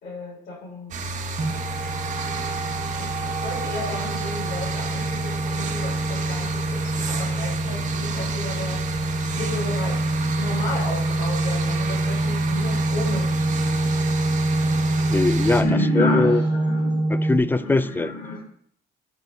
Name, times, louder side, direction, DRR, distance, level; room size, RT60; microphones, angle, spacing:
voice 1, 0.0-1.0 3.0-8.8 9.3-10.1 10.4-13.9 15.6-17.1 17.5-18.4, left 2 dB, 60° left, 3.7 m, -32 dB
sound 1, 0.9-15.6, right 2 dB, 45° right, 1.2 m, -31 dB
sound 2, 1.4-17.4, right 2 dB, 25° right, 1.3 m, -25 dB
voice 2, 15.1-15.7 15.9-16.4 17.1-18.1, left 3 dB, 10° left, 0.4 m, -21 dB
18.0 x 6.2 x 2.7 m
cardioid pair, 110°, 17 cm